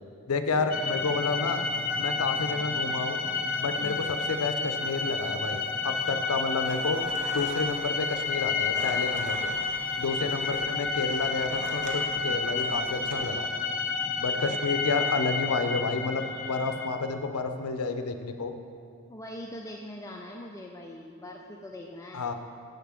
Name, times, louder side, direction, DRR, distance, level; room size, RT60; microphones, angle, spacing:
voice 1, 0.3-1.6 2.0-3.2 3.6-7.0 7.3-9.5 10.0-13.5 14.2-18.5 22.1-22.3, left 4 dB, 90° left, 7 dB, 0.6 m, -30 dB
sound 1, 0.7-16.9, left 4 dB, 40° left, 0.7 m, -30 dB
voice 2, 3.8-4.1 14.5-14.6 15.0-15.1 19.1-22.3, left 1 dB, 15° left, 1 dB, 0.4 m, -42 dB
sound 2, 6.6-13.2, right 1 dB, 35° right, 1.0 m, -45 dB
7.0 x 5.7 x 7.4 m, 2.4 s
head